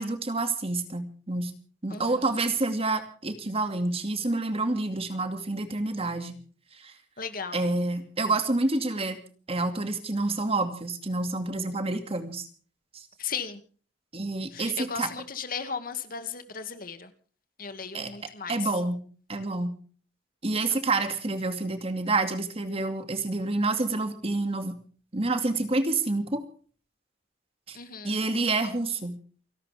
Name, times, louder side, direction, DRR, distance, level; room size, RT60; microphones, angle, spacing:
voice 1, 0.0-1.5 1.8-6.4 6.8-6.9 7.5-9.2 9.5-12.4 14.1-15.1 17.9-18.1 18.5-19.0 19.3-19.8 20.4-24.7 25.1-26.4 27.7-27.8 28.0-29.2, right 2 dB, 35° right, 7 dB, 2.4 m, -28 dB
voice 2, 1.9-2.4 7.2-7.6 13.2-13.6 14.5-17.1 17.6-18.6 27.7-28.3, left 6 dB, 55° left, 9 dB, 2.2 m, -36 dB
29.0 x 12.5 x 3.5 m, 0.42 s
head